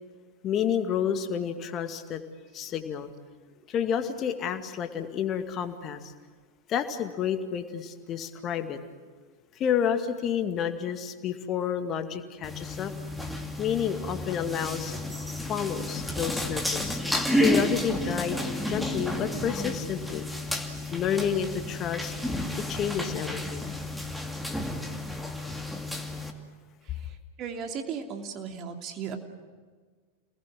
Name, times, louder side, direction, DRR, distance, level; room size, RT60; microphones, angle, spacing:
voice 1, 0.4-2.2 2.5-3.1 3.7-6.0 6.7-8.8 9.6-12.9 13.6-14.9 15.5-17.0 17.3-20.3 20.9-22.1 22.6-23.7, left 8 dB, 30° left, 7 dB, 2.2 m, -30 dB
sound 1, 12.4-26.3, left 1 dB, ahead, 2.5 m, -31 dB
voice 2, 26.8-29.2, right 6 dB, 35° right, 4 dB, 3.0 m, -37 dB
28.0 x 20.0 x 7.7 m, 1.5 s
figure-of-eight pair, 90°, 0 cm